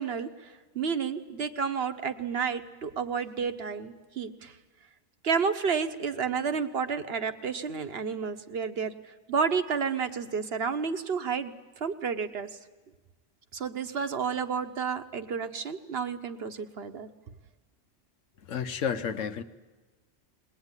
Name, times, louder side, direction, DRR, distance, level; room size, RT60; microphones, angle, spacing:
voice 1, 0.0-4.5 5.2-12.5 13.5-17.1, right 6 dB, 55° right, 9 dB, 1.2 m, -31 dB
voice 2, 18.5-19.4, left 7 dB, 85° left, 10 dB, 1.3 m, -31 dB
21.0 x 19.5 x 9.7 m, 1.3 s
omnidirectional pair, 1.3 m